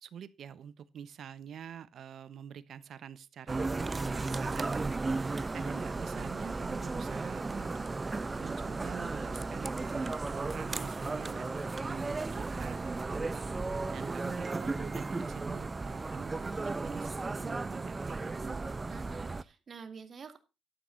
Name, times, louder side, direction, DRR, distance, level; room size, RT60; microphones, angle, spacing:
voice 1, 0.0-5.0 5.5-7.8 8.4-13.5 13.9-18.2, right 8 dB, 65° right, 1.1 m, -47 dB
sound 1, 3.5-19.4, right 3 dB, 25° right, 0.7 m, -35 dB
voice 2, 18.4-20.4, right 5 dB, 45° right, 2.5 m, -48 dB
12.0 x 8.8 x 4.0 m
cardioid pair, 90°, 0 cm